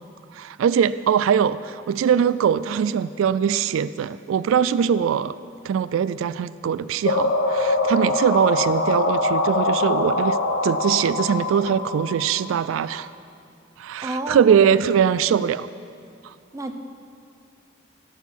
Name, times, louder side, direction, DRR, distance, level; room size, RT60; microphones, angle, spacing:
voice 1, 0.3-5.3 5.6-10.4 10.6-13.1 13.8-15.7 16.2-16.3, right 8 dB, 85° right, 16 dB, 0.3 m, -21 dB
sound 1, 7.0-12.8, left 2 dB, 75° left, 1.1 m, -23 dB
voice 2, 14.0-14.9 16.5-16.7, right 1 dB, 15° right, 5 dB, 0.7 m, -31 dB
16.0 x 6.3 x 7.3 m, 2.5 s
head